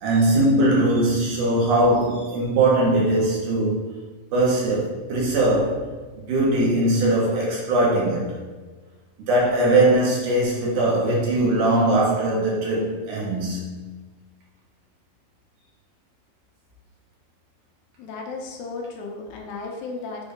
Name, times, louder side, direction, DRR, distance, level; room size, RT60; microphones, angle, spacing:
voice 1, 0.0-3.8 4.3-5.8 6.3-8.3 9.2-13.6, right 1 dB, 65° right, -4 dB, 2.5 m, -20 dB
voice 2, 18.0-20.3, left 3 dB, 80° left, 1 dB, 2.4 m, -34 dB
7.0 x 2.6 x 5.1 m, 1.3 s
omnidirectional pair, 4.1 m